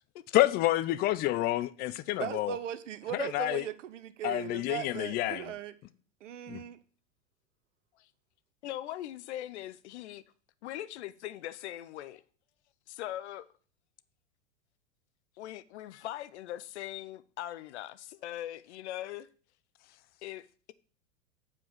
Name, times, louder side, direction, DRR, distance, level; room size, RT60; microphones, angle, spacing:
voice 1, 0.3-2.6 3.1-3.6 4.2-5.5 6.5-6.6, left 16 dB, 25° left, 0.4 m, -28 dB
voice 2, 2.2-5.7 6.2-6.8, right 10 dB, 70° right, 0.8 m, -38 dB
voice 3, 8.6-10.2 10.6-12.2 12.9-13.5 15.4-19.3 20.2-20.7, left 13 dB, 60° left, 0.7 m, -41 dB
8.0 x 4.7 x 7.2 m
figure-of-eight pair, 90°, 39 cm